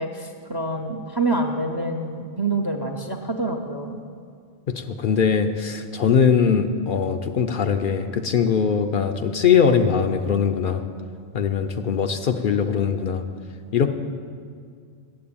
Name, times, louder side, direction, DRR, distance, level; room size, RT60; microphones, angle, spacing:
voice 1, 0.0-4.0, right 2 dB, 30° right, 4 dB, 0.5 m, -26 dB
voice 2, 4.7-10.8 11.3-13.2 13.7-13.9, left 6 dB, 60° left, 6 dB, 0.6 m, -21 dB
8.7 x 7.5 x 8.6 m, 2.2 s
omnidirectional pair, 1.1 m